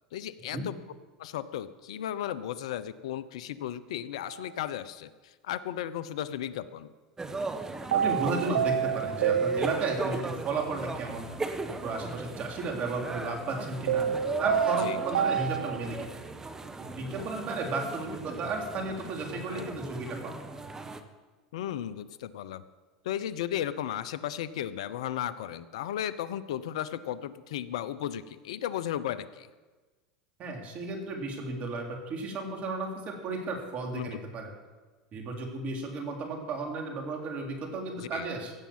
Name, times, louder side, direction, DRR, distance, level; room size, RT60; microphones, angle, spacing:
voice 1, 0.1-0.8 1.2-6.9 14.8-15.0 19.5-19.7 21.5-22.6 23.0-29.5 33.9-34.1 38.0-38.3, left 11 dB, 75° left, 15 dB, 0.7 m, -35 dB
sound 1, 4.3-4.4 7.9-10.2 13.9-15.9, right 8 dB, 85° right, 0.7 m, -28 dB
sound 2, 7.2-21.0, right 3 dB, 15° right, 1.2 m, -38 dB
voice 2, 7.9-11.2 11.7-14.1 14.4-16.1 16.8-20.3 30.4-34.5 35.1-38.5, right 3 dB, 45° right, 1 dB, 3.6 m, -34 dB
16.0 x 7.4 x 7.4 m, 1.3 s
hypercardioid pair, 90°, 3 cm